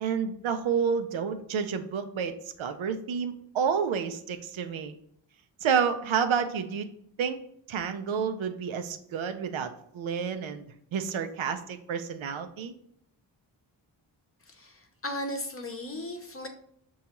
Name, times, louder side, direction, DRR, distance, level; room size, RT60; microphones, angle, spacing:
voice 1, 0.0-4.9 5.6-6.9 7.2-10.7 10.9-12.7, right 6 dB, 90° right, 8 dB, 0.5 m, -30 dB
voice 2, 14.4-16.5, left 1 dB, 30° left, 4 dB, 0.7 m, -36 dB
6.4 x 2.3 x 2.9 m, 0.68 s
cardioid pair, 55°, 47 cm